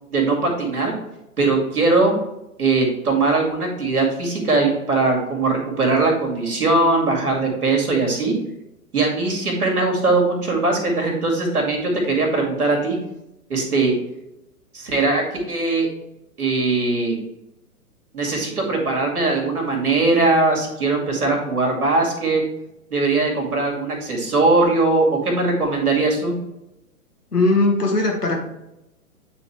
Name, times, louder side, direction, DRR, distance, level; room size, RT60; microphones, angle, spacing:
voice 1, 0.1-0.9 1.4-2.1 2.6-8.3 8.9-13.0 13.5-13.9 14.7-15.9 16.4-17.2 18.1-22.4 22.9-26.3, right 3 dB, 75° right, 0 dB, 2.2 m, -20 dB
voice 2, 27.3-28.4, left 2 dB, 85° left, 0 dB, 1.7 m, -18 dB
9.1 x 4.0 x 3.2 m, 0.89 s
figure-of-eight pair, 120°, 45 cm